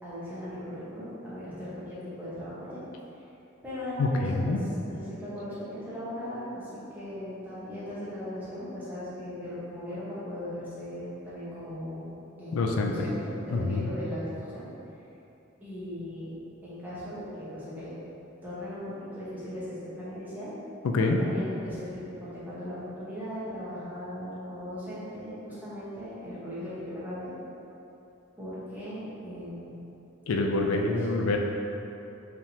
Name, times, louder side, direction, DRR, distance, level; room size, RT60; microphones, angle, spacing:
voice 1, 0.0-2.8 3.6-14.7 15.6-16.4 16.6-18.0 18.4-20.6 21.2-27.3 28.4-29.8 30.5-31.1, equal, 10° right, -11 dB, 1.1 m, -38 dB
voice 2, 4.0-4.6 12.5-12.9 13.5-13.9 20.9-21.2 30.3-31.4, left 3 dB, 85° left, 2 dB, 0.4 m, -26 dB
4.7 x 3.6 x 2.7 m, 2.9 s
head